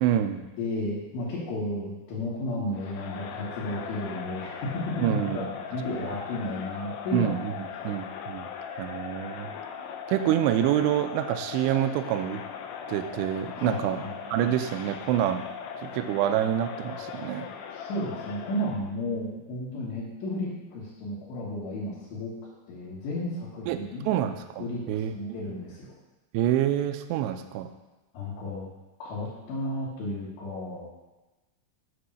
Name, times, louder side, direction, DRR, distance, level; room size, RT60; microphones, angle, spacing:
voice 1, 0.0-0.5 5.0-5.4 7.1-8.5 8.8-9.5 10.1-12.4 12.9-14.0 14.3-15.4 15.8-17.5 23.7-23.8 24.1-25.1 26.3-27.7, right 11 dB, 90° right, 8 dB, 2.4 m, -27 dB
voice 2, 0.6-5.4 5.7-7.9 13.6-14.1 17.7-22.4 22.7-24.1 24.6-25.9 28.1-28.7 29.0-30.9, left 1 dB, 70° left, -10 dB, 3.6 m, -33 dB
Crowd, 2.7-18.9, left 7 dB, 85° left, 2.3 m, -39 dB
9.6 x 3.5 x 6.3 m, 1.1 s
omnidirectional pair, 5.5 m